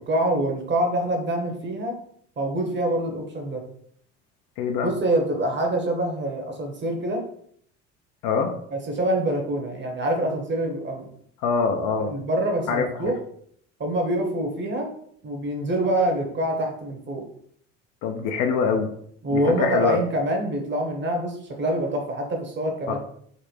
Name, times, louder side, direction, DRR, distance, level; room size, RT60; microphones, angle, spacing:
voice 1, 0.1-2.0 2.4-3.6 4.8-7.2 8.7-11.1 12.0-13.2 13.8-14.9 15.2-17.3 19.2-23.0, right 1 dB, 30° right, 2 dB, 1.0 m, -25 dB
voice 2, 4.6-4.9 8.2-8.5 11.4-12.2 12.7-13.1 18.0-18.9 19.3-20.0 22.9-23.0, left 5 dB, 60° left, 4 dB, 0.6 m, -24 dB
4.0 x 2.1 x 3.2 m, 0.65 s
hypercardioid pair, 60°, 37 cm